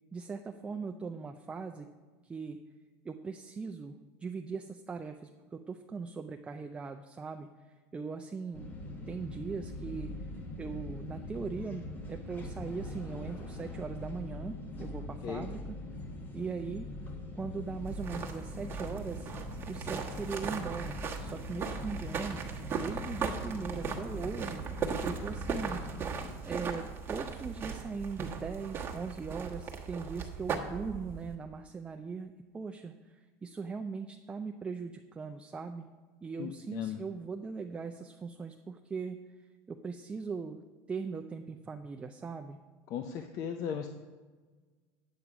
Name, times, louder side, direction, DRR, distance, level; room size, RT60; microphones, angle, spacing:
voice 1, 0.1-1.9 2.2-2.6 3.0-8.7 9.1-10.1 10.6-15.8 16.3-16.9 17.4-19.3 19.7-22.4 22.8-24.6 25.0-25.8 26.4-35.9 36.2-40.6 40.9-42.6, right 5 dB, 15° right, 5 dB, 0.4 m, -40 dB
sound 1, 8.5-26.4, left 1 dB, 25° left, 1.2 m, -42 dB
sound 2, 17.8-31.4, right 6 dB, 30° right, 1.2 m, -38 dB
voice 2, 36.4-37.0 42.9-43.9, left 8 dB, 50° left, 7 dB, 0.6 m, -36 dB
8.9 x 8.1 x 4.9 m, 1.4 s
supercardioid pair, 135°, 7 cm